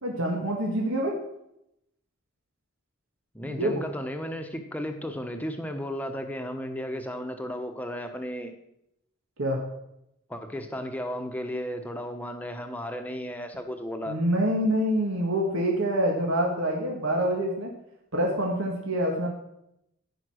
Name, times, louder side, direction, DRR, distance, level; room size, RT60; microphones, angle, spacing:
voice 1, 0.0-1.1 3.4-3.9 9.4-9.6 14.1-17.7 18.1-19.3, right 1 dB, 85° right, -1 dB, 1.9 m, -26 dB
voice 2, 3.3-8.5 10.3-14.2, equal, 10° left, 5 dB, 1.0 m, -34 dB
15.0 x 5.3 x 6.3 m, 0.81 s
head